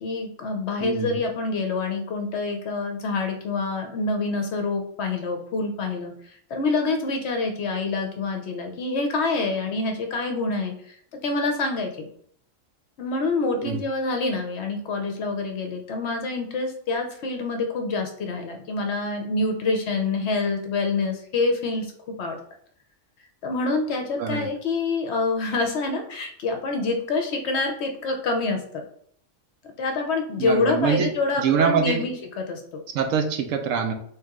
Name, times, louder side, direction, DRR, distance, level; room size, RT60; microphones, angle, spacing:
voice 1, 0.0-11.0 11.2-12.1 13.0-21.9 22.2-22.4 23.4-28.8 29.8-32.8, left 3 dB, 65° left, 4 dB, 0.8 m, -26 dB
voice 2, 0.8-1.2 13.6-13.8 24.2-24.5 30.4-32.1 32.9-33.9, right 6 dB, 75° right, 5 dB, 0.9 m, -24 dB
3.2 x 2.9 x 3.5 m, 0.63 s
omnidirectional pair, 1.4 m